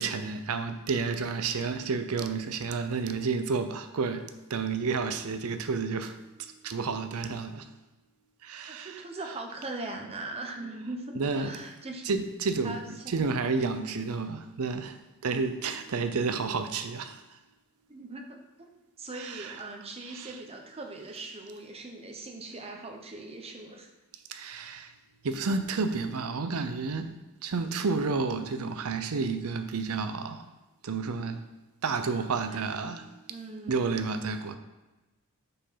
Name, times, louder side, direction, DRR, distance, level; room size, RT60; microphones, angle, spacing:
voice 1, 0.0-4.2 4.5-7.7 8.4-9.0 11.2-11.5 12.1-12.8 13.1-17.2 19.2-19.6 20.0-20.3 24.3-24.9 25.2-27.1 27.4-30.5 30.8-31.4 31.8-33.1 33.7-34.6, right 4 dB, 70° right, 0.6 m, -31 dB
voice 2, 8.7-12.0 12.6-13.3 13.5-13.9 17.9-18.7 19.0-23.9 32.2-33.0 33.3-33.8, right 2 dB, 25° right, 0.8 m, -41 dB
5.1 x 4.5 x 5.6 m
head